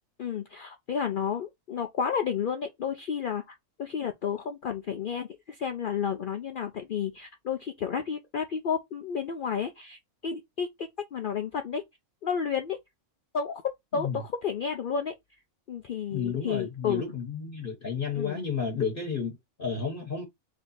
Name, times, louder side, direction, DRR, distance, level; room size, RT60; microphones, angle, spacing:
voice 1, 0.2-11.8 12.2-12.8 13.3-15.1 15.7-17.0 18.1-18.4, left 7 dB, 70° left, 0.5 m, -31 dB
voice 2, 16.1-20.2, left 6 dB, 45° left, 1.1 m, -32 dB
3.4 x 2.8 x 3.9 m
omnidirectional pair, 1.4 m